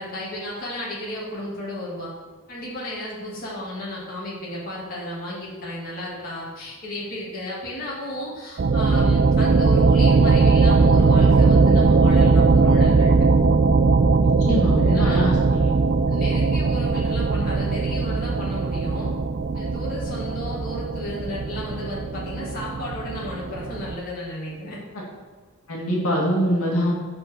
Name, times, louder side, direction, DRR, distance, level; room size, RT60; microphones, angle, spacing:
voice 1, 0.0-2.1 2.5-13.1 14.8-15.3 16.1-19.1 19.5-24.8, left 1 dB, 40° left, -7 dB, 2.5 m, -33 dB
sound 1, 8.6-24.0, right 4 dB, 50° right, 0.4 m, -19 dB
voice 2, 14.2-15.7 25.7-26.9, equal, 75° left, -4 dB, 2.4 m, -24 dB
8.2 x 4.9 x 6.6 m, 1.4 s
head